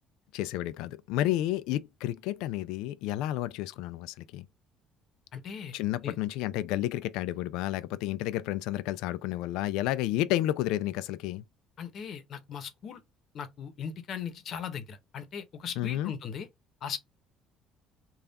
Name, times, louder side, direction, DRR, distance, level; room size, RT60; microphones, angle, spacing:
voice 1, 0.3-4.4 5.7-11.4 15.8-16.1, left 14 dB, 85° left, 0.3 m, -31 dB
voice 2, 5.3-5.8 6.0-6.2 11.8-13.0 13.3-16.5 16.8-17.0, left 7 dB, 45° left, 0.8 m, -38 dB
3.5 x 2.3 x 3.9 m
cardioid pair, 140°, 0 cm